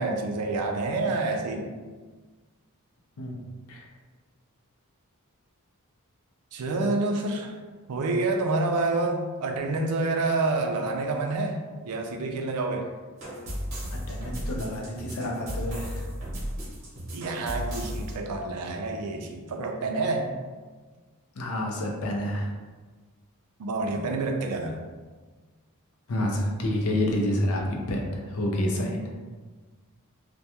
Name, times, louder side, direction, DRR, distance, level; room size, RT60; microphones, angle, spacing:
voice 1, 0.0-1.7 6.5-7.5 7.9-11.6 11.8-12.9 17.1-20.3 23.6-24.8, right 3 dB, 85° right, 3 dB, 0.4 m, -28 dB
sound 1, 13.2-18.2, equal, 65° right, 0.8 m, -34 dB
voice 2, 13.9-16.1 21.4-22.5 26.1-29.0, left 1 dB, 70° left, 0 dB, 0.5 m, -28 dB
2.2 x 2.2 x 2.8 m, 1.4 s
head